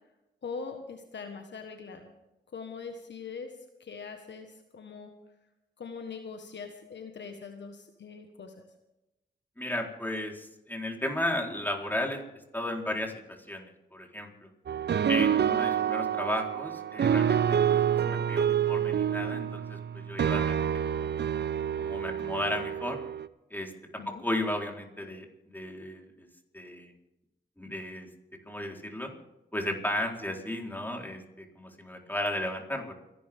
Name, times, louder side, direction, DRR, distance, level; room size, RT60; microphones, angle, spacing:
voice 1, 0.4-2.1 2.5-3.5 3.8-5.1 5.8-8.5 24.0-24.2, left 5 dB, 70° left, 5 dB, 1.5 m, -42 dB
voice 2, 9.6-12.2 12.5-14.5 15.1-20.7 20.9-21.1 21.8-23.0 23.5-26.3 26.5-26.9 27.6-28.1 28.5-29.1 29.5-32.9, left 1 dB, 10° left, 0 dB, 4.1 m, -34 dB
sound 1, 14.7-23.3, right 8 dB, 60° right, 0.6 m, -27 dB
29.5 x 11.0 x 3.6 m, 0.94 s
cardioid pair, 45°, 19 cm